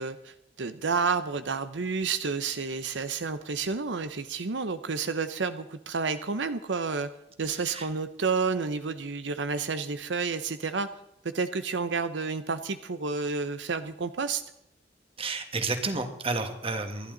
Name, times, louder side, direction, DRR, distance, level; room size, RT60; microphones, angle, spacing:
voice 1, 0.0-7.1 7.4-10.9 11.3-14.4, right 4 dB, 85° right, 11 dB, 0.8 m, -30 dB
voice 2, 15.2-17.1, right 3 dB, 30° right, 7 dB, 1.7 m, -31 dB
26.5 x 11.5 x 3.9 m, 0.80 s
head